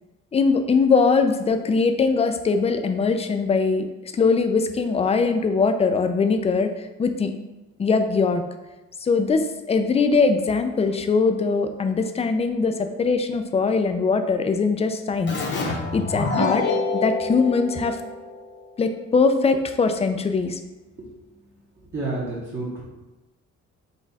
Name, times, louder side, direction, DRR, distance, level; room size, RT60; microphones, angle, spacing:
voice 1, 0.3-3.9 4.1-6.7 7.0-7.3 7.8-8.4 9.0-15.4 15.7-16.6 17.0-18.0 18.8-20.6, left 4 dB, 20° left, 7 dB, 0.3 m, -21 dB
Keyboard (musical), 15.3-18.6, left 3 dB, 35° left, 0.8 m, -27 dB
voice 2, 21.9-22.8, right 2 dB, 40° right, -7 dB, 1.0 m, -29 dB
4.1 x 2.3 x 4.0 m, 1.0 s
cardioid pair, 90°, 30 cm